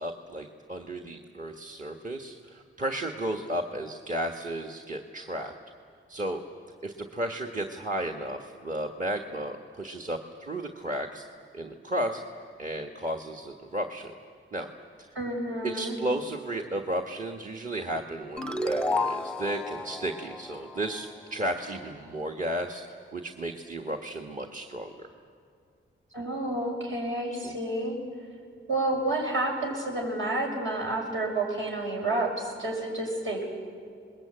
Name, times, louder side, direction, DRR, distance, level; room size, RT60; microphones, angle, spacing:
voice 1, 0.0-5.5 6.1-6.4 6.8-11.2 11.5-12.2 12.6-14.1 14.5-14.7 15.0-15.1 15.6-22.8 23.1-25.1 27.4-27.5, right 1 dB, 40° right, 2 dB, 1.4 m, -33 dB
voice 2, 15.1-16.0 26.1-28.0 28.7-33.5, right 2 dB, 70° right, -1 dB, 6.9 m, -30 dB
sound 1, 18.4-21.6, left 2 dB, 5° left, 0.7 m, -32 dB
29.0 x 21.0 x 8.9 m, 2.2 s
wide cardioid pair, 90°, 21 cm